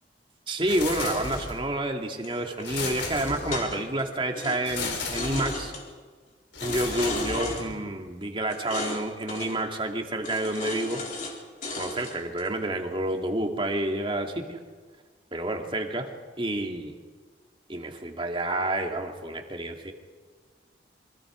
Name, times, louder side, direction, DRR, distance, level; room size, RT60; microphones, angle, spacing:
voice 1, 0.5-5.7 6.6-11.0 11.8-14.6 15.3-16.1 16.4-17.0 17.7-19.9, right 1 dB, 25° right, 3 dB, 2.3 m, -29 dB
sound 1, 0.6-1.7 2.6-3.8 4.6-5.7 6.5-7.8, left 3 dB, 80° left, 4.2 m, -35 dB
sound 2, 2.2-4.0 4.3-5.8 6.6-7.6 8.5-9.0 9.3-9.6 10.2-11.3 11.6-12.5, left 2 dB, 45° left, 4.4 m, -35 dB
28.5 x 25.0 x 5.0 m, 1.5 s
head